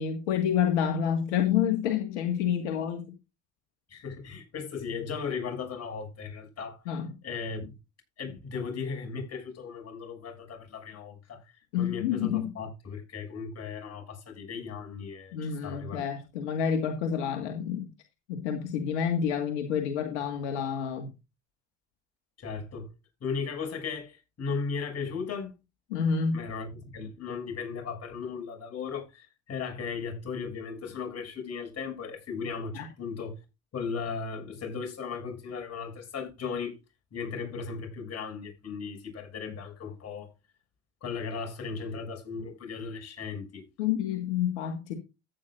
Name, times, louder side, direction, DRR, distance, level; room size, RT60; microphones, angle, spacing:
voice 1, 0.0-3.1 6.9-7.1 11.7-12.5 15.3-17.9 18.3-21.1 25.9-26.5 32.7-32.9 43.8-44.9, left 8 dB, 80° left, 1.9 m, -28 dB
voice 2, 3.9-6.8 7.2-7.7 8.2-11.4 11.8-16.0 22.4-22.9 23.2-25.5 26.3-33.4 33.7-36.8 37.1-40.3 41.0-43.7, left 5 dB, 45° left, 7.1 m, -36 dB
14.5 x 9.2 x 2.6 m
hypercardioid pair, 70°, 34 cm